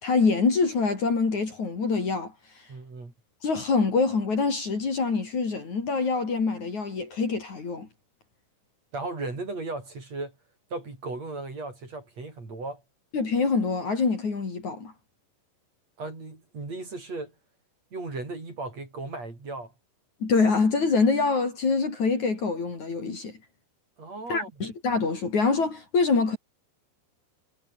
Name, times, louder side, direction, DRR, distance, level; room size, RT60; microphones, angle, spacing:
voice 1, 0.0-2.3 3.4-7.9 13.1-14.9 20.2-23.4 24.3-26.4, left 4 dB, 45° left, 5.6 m, -25 dB
voice 2, 2.7-3.1 8.9-10.4 10.7-12.8 16.0-17.3 17.9-19.7 24.0-24.7, right 3 dB, 35° right, 7.3 m, -36 dB
omnidirectional pair, 5.0 m